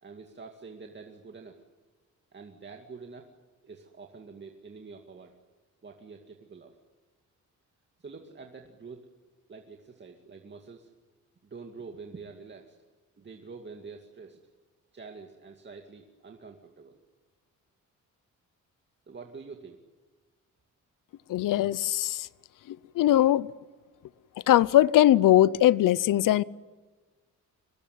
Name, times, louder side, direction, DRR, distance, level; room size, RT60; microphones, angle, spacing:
voice 1, 0.0-1.6 2.3-3.3 3.6-5.3 5.8-6.8 8.0-9.1 9.5-10.9 11.5-12.8 13.2-14.4 14.9-17.0 19.1-19.8, right 4 dB, 35° right, 2.3 m, -46 dB
voice 2, 21.3-22.3 22.7-23.5 24.5-26.4, left 13 dB, 90° left, 0.8 m, -21 dB
24.5 x 20.5 x 9.5 m
cardioid pair, 115°, 31 cm